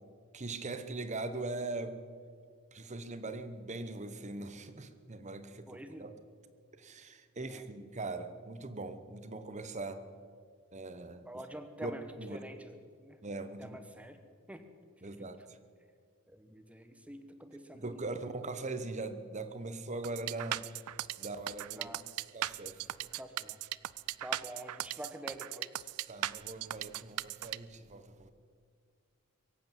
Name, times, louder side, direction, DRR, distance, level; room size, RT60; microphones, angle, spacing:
voice 1, 0.3-2.0 2.7-6.1 6.8-10.1 10.7-11.3 11.8-11.9 12.2-12.4 13.2-13.8 15.0-15.4 17.7-20.7 21.2-21.9 22.3-22.8 26.1-28.3, right 2 dB, 30° right, 10 dB, 0.9 m, -41 dB
voice 2, 5.7-6.1 7.4-7.7 11.2-13.2 13.6-14.2 14.5-14.6 15.2-15.3 16.3-18.3 21.8-22.0 23.1-23.6 24.2-25.9, right 1 dB, 5° right, 8 dB, 1.0 m, -47 dB
sound 1, 20.0-27.6, right 14 dB, 85° right, 0.4 m, -38 dB
23.0 x 8.6 x 7.3 m, 2.1 s
head